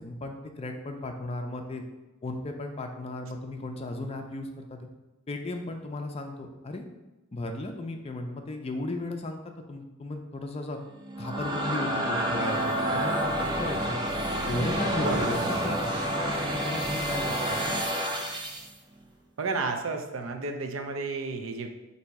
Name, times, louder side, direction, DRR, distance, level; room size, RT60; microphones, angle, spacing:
voice 1, 0.0-1.8 2.2-4.8 5.3-6.8 7.3-9.4 9.7-10.8 11.2-14.0 14.4-15.8 16.4-17.6, left 2 dB, 30° left, 4 dB, 0.4 m, -35 dB
sound 1, 11.0-18.7, right 1 dB, 20° right, 0.5 m, -29 dB
voice 2, 19.4-21.7, right 3 dB, 75° right, 5 dB, 0.5 m, -31 dB
4.0 x 2.7 x 4.6 m, 1.1 s
head